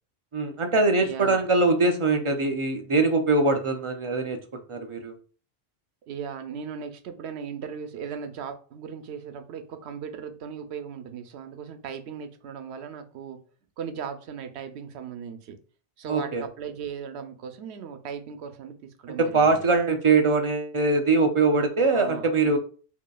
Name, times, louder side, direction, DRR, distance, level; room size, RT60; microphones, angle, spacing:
voice 1, 0.3-4.4 4.7-5.1 16.1-16.4 19.2-22.6, right 3 dB, 55° right, 5 dB, 0.3 m, -22 dB
voice 2, 1.0-1.4 6.1-13.4 13.8-15.6 16.0-19.6 21.8-22.6, right 7 dB, 85° right, 8 dB, 0.9 m, -37 dB
4.9 x 2.7 x 2.3 m, 0.40 s
omnidirectional pair, 1.1 m